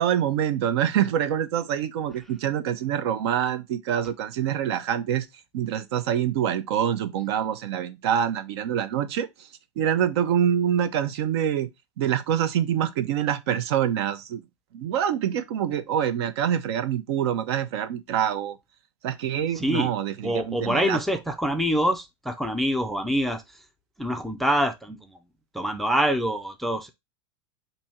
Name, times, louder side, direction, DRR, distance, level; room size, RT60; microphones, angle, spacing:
voice 1, 0.0-5.3 5.5-9.3 9.8-11.7 12.0-14.4 14.7-18.6 19.0-21.0, right 9 dB, 65° right, 0.8 m, -25 dB
voice 2, 19.5-19.9 20.2-23.6 24.0-25.0 25.5-26.9, equal, ahead, 0.4 m, -25 dB
4.3 x 2.7 x 4.2 m
supercardioid pair, 145°, 15 cm